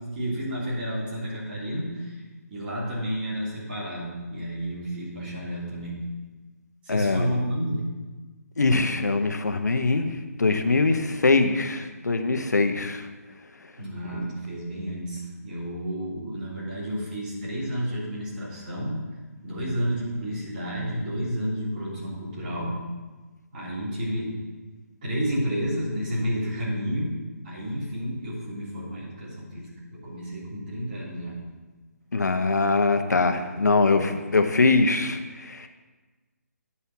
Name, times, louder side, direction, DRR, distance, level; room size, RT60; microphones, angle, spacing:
voice 1, 0.1-2.2 2.5-6.0 6.8-7.8 13.8-19.0 19.4-22.8 23.5-24.3 25.0-27.2 27.4-31.4 34.1-34.2, equal, 30° right, -7 dB, 3.3 m, -31 dB
voice 2, 6.9-7.3 8.6-13.1 14.2-14.3 32.1-35.7, left 3 dB, 85° left, 6 dB, 0.9 m, -23 dB
9.7 x 4.3 x 7.0 m, 1.3 s
hypercardioid pair, 160°, 9 cm